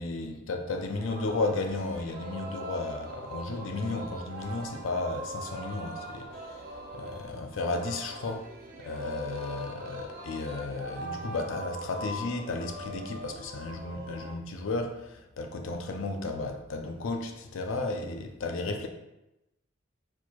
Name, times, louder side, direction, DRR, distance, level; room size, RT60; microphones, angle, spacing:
voice 1, 0.0-8.5 8.8-18.9, left 3 dB, 85° left, 0.5 m, -34 dB
Singing, 0.7-14.4, right 1 dB, 45° right, 0.5 m, -41 dB
4.5 x 4.3 x 2.3 m
head